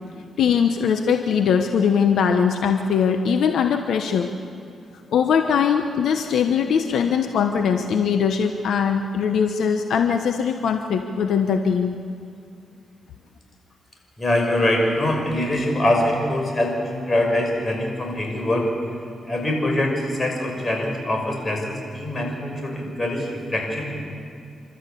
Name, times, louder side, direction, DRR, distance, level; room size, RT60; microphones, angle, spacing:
voice 1, 0.4-4.3 5.1-12.0, left 7 dB, 80° left, 6 dB, 1.0 m, -21 dB
voice 2, 14.2-18.7 19.2-24.1, left 1 dB, 30° left, 2 dB, 6.0 m, -23 dB
29.5 x 13.0 x 8.4 m, 2.3 s
cardioid pair, 85°, 0 cm